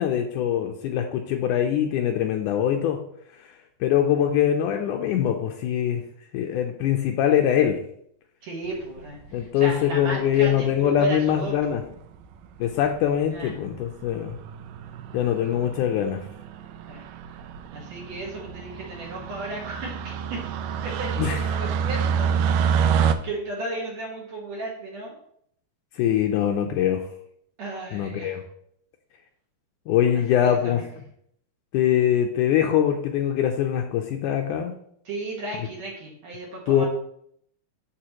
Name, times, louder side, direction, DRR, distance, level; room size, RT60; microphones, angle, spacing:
voice 1, 0.0-3.0 3.8-6.0 6.3-7.8 9.3-11.8 12.6-14.4 15.1-16.2 21.2-21.4 26.0-27.0 27.9-28.4 29.9-30.8 31.7-34.7 36.7-36.9, left 9 dB, 90° left, 4 dB, 1.8 m, -23 dB
voice 2, 8.4-11.8 13.3-13.5 16.9-17.0 17.7-20.4 20.8-25.1 27.6-28.4 30.3-30.9 35.1-36.9, right 2 dB, 55° right, -3 dB, 2.3 m, -35 dB
sound 1, 9.0-9.5 10.4-10.8 11.7-11.8 12.0-12.1 12.4-12.5 12.8-13.1 13.5-13.8 14.0-23.1, right 7 dB, 90° right, 1.8 m, -28 dB
12.5 x 4.2 x 3.0 m, 0.68 s
omnidirectional pair, 4.3 m